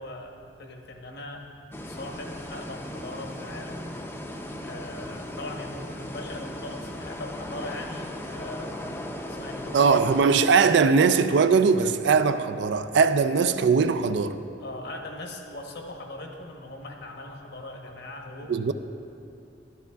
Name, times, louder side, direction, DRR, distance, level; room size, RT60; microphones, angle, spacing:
voice 1, 0.0-1.5 1.9-3.9 4.6-8.9 9.3-10.4 14.6-18.7, left 1 dB, 65° left, 1.0 m, -40 dB
sound 1, 1.7-10.2, left 1 dB, 10° left, 0.5 m, -37 dB
voice 2, 9.7-14.4 18.5-18.7, right 5 dB, 65° right, 0.4 m, -20 dB
12.5 x 11.0 x 2.3 m
head